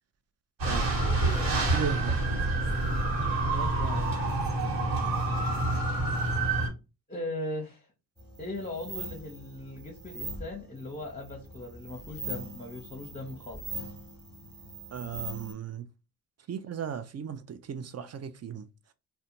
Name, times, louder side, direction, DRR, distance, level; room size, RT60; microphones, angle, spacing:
sound 1, 0.6-6.7, right 2 dB, 70° right, 1.3 m, -27 dB
voice 1, 1.7-2.2 14.9-15.8 16.5-18.7, right 8 dB, 35° right, 0.4 m, -35 dB
voice 2, 3.4-4.1 7.1-7.9 8.4-13.9, left 1 dB, 20° left, 0.7 m, -39 dB
sound 2, 8.2-15.5, right 2 dB, 10° right, 1.0 m, -41 dB
2.4 x 2.2 x 2.8 m
supercardioid pair, 55°, 46 cm